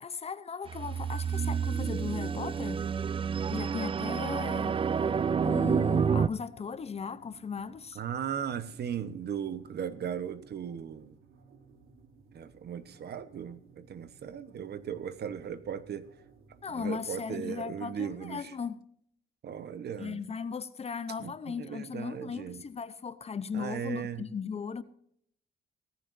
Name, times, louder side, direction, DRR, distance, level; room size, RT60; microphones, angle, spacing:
voice 1, 0.0-2.9 3.5-4.8 5.4-8.0 16.6-18.8 20.0-24.8, left 6 dB, 30° left, 0.7 m, -37 dB
sound 1, 0.7-6.3, right 6 dB, 25° right, 0.4 m, -29 dB
sound 2, 2.2-16.8, right 5 dB, 85° right, 3.0 m, -59 dB
voice 2, 7.9-11.2 12.3-16.1 16.7-18.5 19.4-20.2 21.2-22.6 23.5-24.3, right 8 dB, 55° right, 1.1 m, -37 dB
18.0 x 15.0 x 2.6 m
cardioid pair, 145°, 20 cm